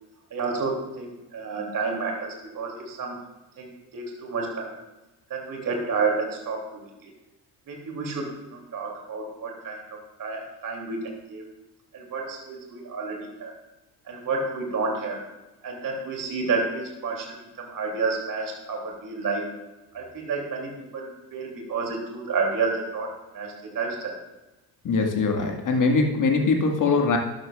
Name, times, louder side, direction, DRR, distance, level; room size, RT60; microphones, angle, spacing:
voice 1, 0.3-3.2 3.6-4.8 5.3-7.1 7.7-11.0 11.3-11.4 11.9-13.5 14.1-15.2 15.6-19.4 19.9-23.1 23.3-24.1, right 4 dB, 40° right, 0 dB, 3.0 m, -30 dB
voice 2, 24.8-27.2, left 4 dB, 40° left, 3 dB, 2.0 m, -22 dB
12.5 x 11.0 x 2.5 m, 1.0 s
figure-of-eight pair, 55°, 50 cm